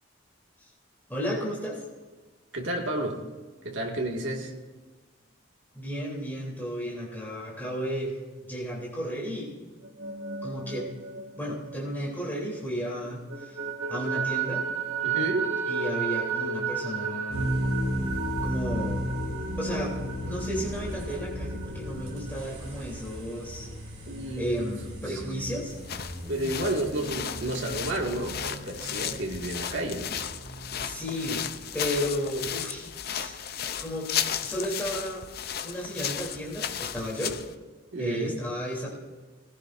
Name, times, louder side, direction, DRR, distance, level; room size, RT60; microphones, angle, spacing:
voice 1, 1.1-1.8 5.7-8.2 8.5-9.5 10.4-10.9 11.4-13.6 13.9-14.6 15.7-17.5 18.4-19.0 19.6-19.9 20.2-23.7 24.4-25.8 30.8-31.5 31.7-33.4 33.8-34.1 34.4-35.2 35.6-37.4 38.0-39.0, equal, 10° left, -5 dB, 3.2 m, -33 dB
voice 2, 2.5-3.2 3.6-4.5 15.0-15.5 24.1-24.7 26.3-30.1 33.2-33.4 37.9-38.4, right 1 dB, 65° right, 0 dB, 2.0 m, -31 dB
sound 1, 9.8-12.7 13.0-22.5, right 6 dB, 80° right, 2.3 m, -33 dB
sound 2, 17.3-30.9, equal, 40° right, 5.4 m, -35 dB
sound 3, 25.7-37.5, left 9 dB, 50° left, 0.6 m, -34 dB
19.5 x 15.5 x 2.6 m, 1.3 s
head